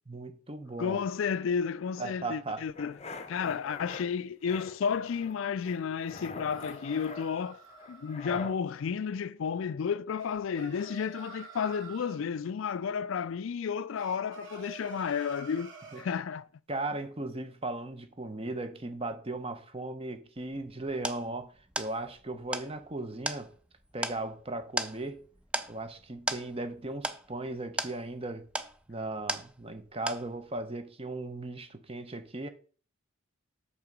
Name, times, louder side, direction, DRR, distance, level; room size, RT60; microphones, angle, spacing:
voice 1, 0.1-1.0 2.0-2.6 15.9-16.0 16.7-21.5 21.8-23.5 23.9-25.2 25.7-28.5 28.9-32.5, right 2 dB, 25° right, 0.8 m, -37 dB
voice 2, 0.8-3.0 3.3-7.6 7.9-16.5, left 6 dB, 65° left, 0.4 m, -32 dB
sound 1, 2.7-4.0 4.4-5.3 5.6-8.6, left 3 dB, 30° left, 0.7 m, -44 dB
sound 2, 6.1-8.1 10.2-12.2 14.0-16.1, right 5 dB, 60° right, 2.3 m, -49 dB
sound 3, 20.4-29.8 30.1-30.6, right 1 dB, 5° right, 0.4 m, -37 dB
6.7 x 5.7 x 5.2 m
head